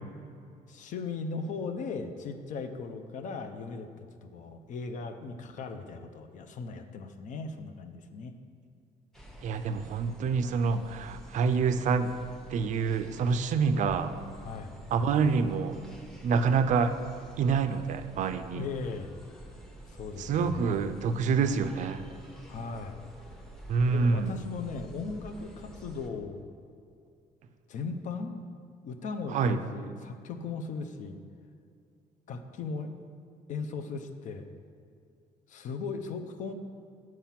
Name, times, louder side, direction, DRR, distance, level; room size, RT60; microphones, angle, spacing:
voice 1, 0.7-8.3 14.4-14.8 18.5-19.1 19.9-20.8 22.5-23.1 23.8-26.4 27.7-28.3 28.8-31.2 32.3-32.9 33.5-34.5 35.5-36.5, left 4 dB, 55° left, 7 dB, 0.6 m, -38 dB
sound 1, 9.1-26.1, right 1 dB, 5° left, 0.7 m, -49 dB
voice 2, 9.4-12.1 12.5-14.1 14.9-15.8 16.2-17.0 17.4-18.6 20.2-22.0 23.7-24.3 29.3-29.6, right 5 dB, 55° right, 10 dB, 0.4 m, -27 dB
7.5 x 4.6 x 5.7 m, 2.4 s
cardioid pair, 160°, 15 cm